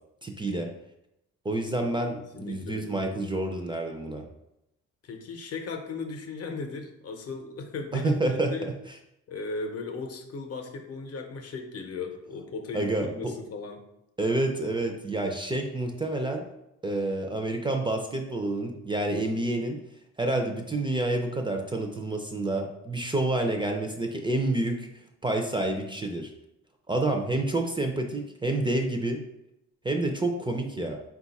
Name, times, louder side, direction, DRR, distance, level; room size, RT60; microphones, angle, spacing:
voice 1, 0.2-0.7 1.4-4.3 7.9-8.7 12.7-13.3 14.2-16.5 16.8-19.8 20.2-24.9 25.2-26.3 26.9-29.2 29.8-31.0, right 2 dB, 15° right, 3 dB, 0.4 m, -28 dB
voice 2, 2.4-3.0 5.0-8.7 9.3-13.8, left 3 dB, 55° left, 4 dB, 0.7 m, -37 dB
3.9 x 2.4 x 4.0 m, 0.85 s
cardioid pair, 90°, 30 cm